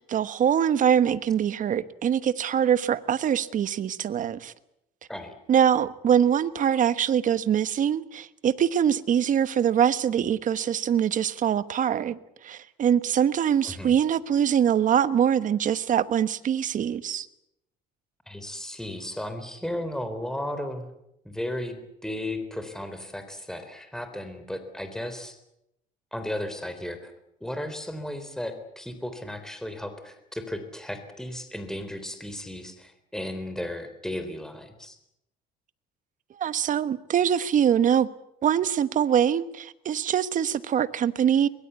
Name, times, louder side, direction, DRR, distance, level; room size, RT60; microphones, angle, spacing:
voice 1, 0.0-4.5 5.5-17.3 36.4-38.1 38.4-41.5, right 9 dB, 50° right, 1.3 m, -23 dB
voice 2, 13.6-13.9 18.3-20.9 21.2-25.4 26.1-27.1 27.4-35.0, left 1 dB, 5° left, 3.8 m, -35 dB
23.0 x 21.5 x 8.2 m
cardioid pair, 110°, 17 cm